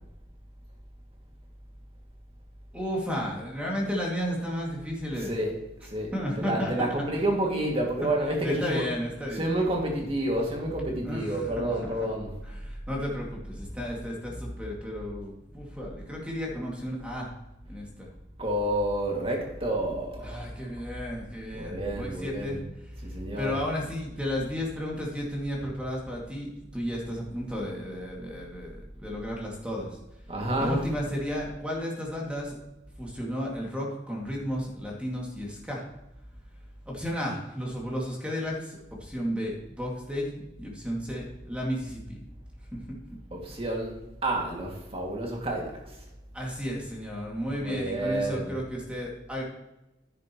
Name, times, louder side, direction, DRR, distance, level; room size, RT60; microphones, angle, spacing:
voice 1, 2.7-5.3 6.1-6.7 7.0-7.2 8.0-8.1 8.4-9.5 11.0-12.0 12.4-17.3 17.7-18.1 20.2-22.9 23.4-30.0 30.6-32.6 33.0-35.8 36.9-40.3 40.6-42.2 42.9-43.0 46.3-49.4, equal, 5° right, -3 dB, 2.3 m, -33 dB
voice 2, 5.2-5.6 5.8-8.9 9.3-12.3 14.3-14.4 16.1-16.2 18.4-20.5 21.5-22.6 23.0-23.6 30.3-31.0 43.3-43.9 44.2-46.0 47.6-48.6, right 1 dB, 30° right, 0 dB, 2.3 m, -29 dB
10.5 x 10.5 x 3.1 m, 0.94 s
head